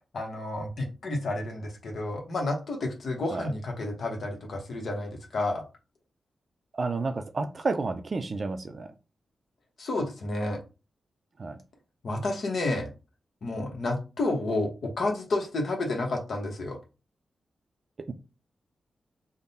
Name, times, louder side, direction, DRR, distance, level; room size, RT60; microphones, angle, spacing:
voice 1, 0.1-5.6 9.8-10.6 12.0-12.9 13.4-16.8, left 2 dB, 70° left, 0.8 m, -30 dB
voice 2, 6.7-8.9 11.4-11.6 18.1-18.2, right 3 dB, 50° right, 0.4 m, -31 dB
3.6 x 2.0 x 4.0 m
cardioid pair, 70°, 0 cm